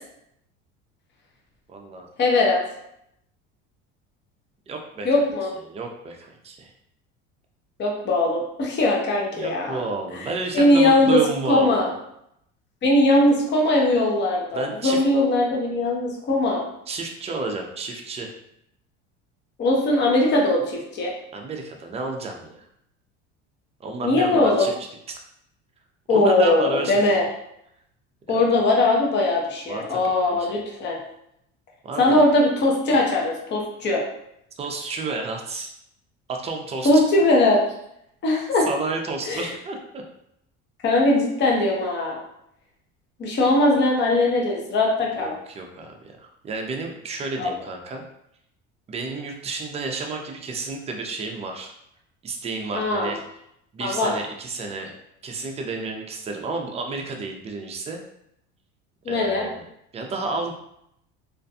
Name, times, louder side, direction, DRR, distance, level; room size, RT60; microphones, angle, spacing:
voice 1, 1.7-2.1 4.7-5.3 5.6-6.7 9.3-11.9 14.5-15.0 16.9-18.3 21.3-22.7 23.8-24.7 25.1-25.2 26.1-27.2 28.3-28.6 29.7-30.5 31.8-32.2 34.6-35.7 36.3-36.9 38.7-40.0 45.2-48.0 48.9-51.7 52.2-53.2 53.7-54.9 55.2-58.0 59.1-59.6 59.9-60.5, right 3 dB, 20° right, 2 dB, 0.4 m, -31 dB
voice 2, 2.2-2.6 5.0-5.5 7.8-9.8 10.1-10.3 10.5-11.2 11.5-11.9 12.8-16.6 19.6-21.1 24.0-24.7 26.1-27.2 28.3-31.0 32.0-34.0 36.8-37.6 38.2-38.7 39.3-39.5 40.8-42.2 43.2-45.4 47.4-47.5 52.7-53.2 53.8-54.2 59.0-59.5, left 2 dB, 35° left, -1 dB, 0.7 m, -20 dB
2.5 x 2.2 x 2.6 m, 0.76 s
supercardioid pair, 110°, 30 cm